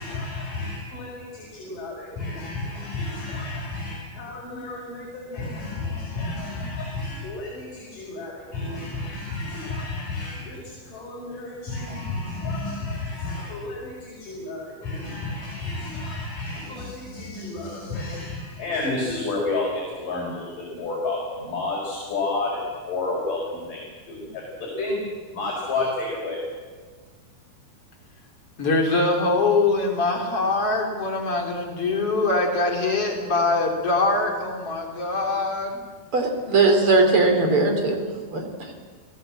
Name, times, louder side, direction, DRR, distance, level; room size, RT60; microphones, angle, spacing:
voice 1, 0.0-23.8 24.1-25.0 25.3-26.4, left 2 dB, 60° left, -3 dB, 6.4 m, -31 dB
voice 2, 28.6-35.8, left 3 dB, 40° left, 2 dB, 3.9 m, -23 dB
voice 3, 36.1-38.0 38.3-38.7, right 3 dB, 35° right, 4 dB, 4.0 m, -19 dB
30.0 x 18.5 x 7.7 m, 1.5 s
omnidirectional pair, 4.4 m